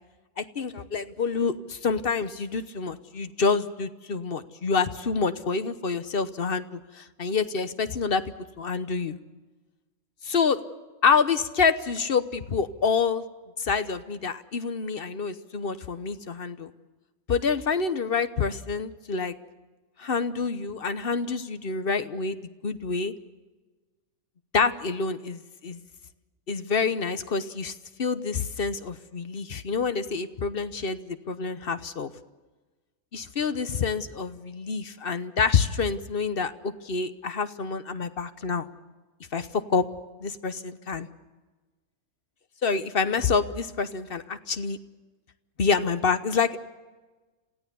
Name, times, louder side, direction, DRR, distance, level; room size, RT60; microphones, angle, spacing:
voice 1, 0.4-8.2 8.6-9.2 10.2-10.6 11.0-13.2 13.6-16.7 17.3-19.3 20.0-23.1 24.5-25.8 26.5-27.7 28.0-32.1 33.1-38.7 39.3-39.9 40.2-41.1 42.6-44.8 45.6-46.6, left 5 dB, 45° left, 11 dB, 1.0 m, -27 dB
27.5 x 16.5 x 6.9 m, 1.2 s
omnidirectional pair, 1.5 m